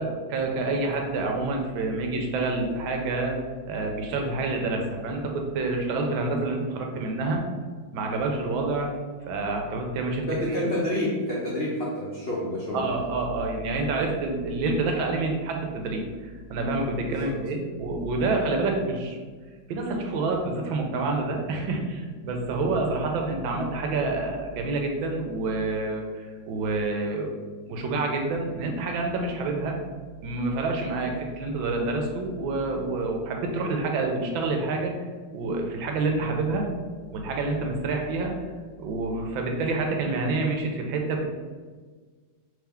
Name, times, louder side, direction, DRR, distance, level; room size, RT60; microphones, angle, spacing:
voice 1, 0.0-3.3 3.7-7.4 7.9-8.9 9.3-10.6 12.7-19.2 19.7-27.3 27.7-29.8 30.2-34.9 35.3-36.7 37.1-38.3 38.8-41.2, right 3 dB, 90° right, 2 dB, 1.4 m, -28 dB
voice 2, 10.3-12.9 17.0-17.3, left 1 dB, 80° left, -6 dB, 0.5 m, -28 dB
3.6 x 3.1 x 3.4 m, 1.5 s
omnidirectional pair, 2.1 m